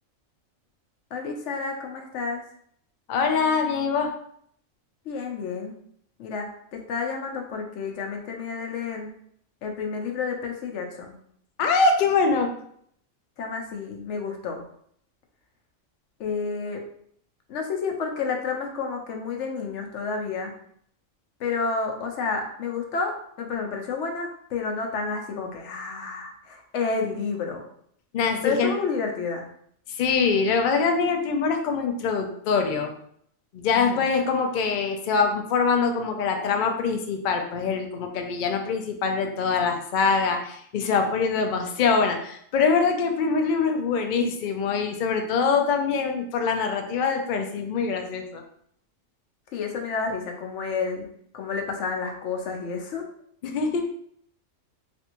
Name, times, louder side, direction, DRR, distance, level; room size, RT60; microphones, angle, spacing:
voice 1, 1.1-2.4 5.1-5.7 6.2-9.1 9.6-11.1 13.4-14.6 16.2-16.8 17.5-20.5 21.4-27.6 28.4-29.4 33.7-34.1 49.5-51.1 51.3-53.0, left 4 dB, 70° left, 2 dB, 0.9 m, -30 dB
voice 2, 3.1-4.1 11.6-12.5 28.1-28.7 29.9-32.9 33.5-48.4 53.4-53.8, left 5 dB, 90° left, 4 dB, 0.4 m, -24 dB
3.2 x 2.6 x 2.9 m, 0.67 s
omnidirectional pair, 1.4 m